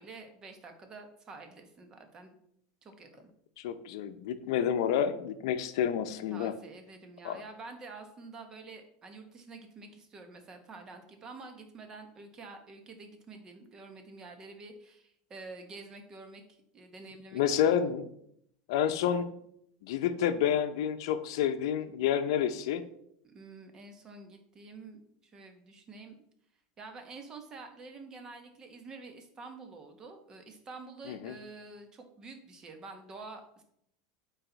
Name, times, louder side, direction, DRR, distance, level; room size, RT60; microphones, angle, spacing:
voice 1, 0.0-2.3 2.8-3.3 6.3-17.9 23.2-26.2 26.8-33.6, right 3 dB, 25° right, 6 dB, 1.1 m, -48 dB
voice 2, 3.6-6.5 7.2-7.4 17.3-18.1 18.7-19.3 19.8-22.8 31.1-31.4, left 9 dB, 70° left, 10 dB, 0.7 m, -29 dB
9.0 x 4.2 x 4.0 m, 0.72 s
supercardioid pair, 155°, 3 cm